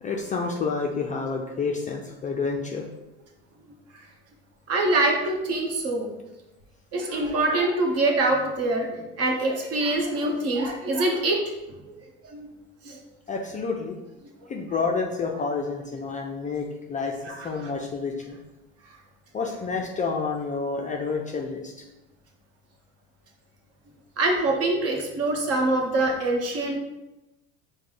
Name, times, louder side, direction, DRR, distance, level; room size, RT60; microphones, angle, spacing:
voice 1, 0.0-2.8 13.3-14.0 14.5-17.2 17.4-18.4 19.3-21.7, left 4 dB, 20° left, 0 dB, 0.4 m, -29 dB
voice 2, 4.7-6.1 6.9-11.4 11.9-12.0 12.3-12.5 12.8-13.0 17.2-17.7 24.2-26.8, right 2 dB, 45° right, 1 dB, 1.1 m, -24 dB
4.8 x 2.2 x 3.8 m, 0.98 s
supercardioid pair, 95°, 35 cm